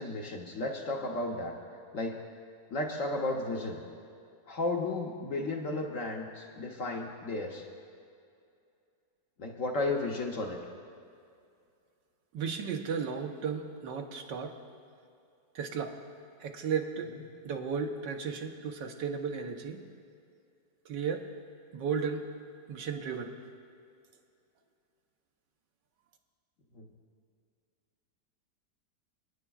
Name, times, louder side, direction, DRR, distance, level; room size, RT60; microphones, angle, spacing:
voice 1, 0.0-1.5 1.9-2.2 2.7-3.8 4.5-7.6 9.4-10.6 26.7-26.9, left 2 dB, 55° left, 1 dB, 1.1 m, -33 dB
voice 2, 12.3-14.5 15.5-16.0 16.4-17.1 17.4-19.8 20.8-21.3 21.7-22.3 22.7-23.3, right 6 dB, 80° right, 3 dB, 1.6 m, -34 dB
26.5 x 9.9 x 2.4 m, 2.4 s
omnidirectional pair, 1.9 m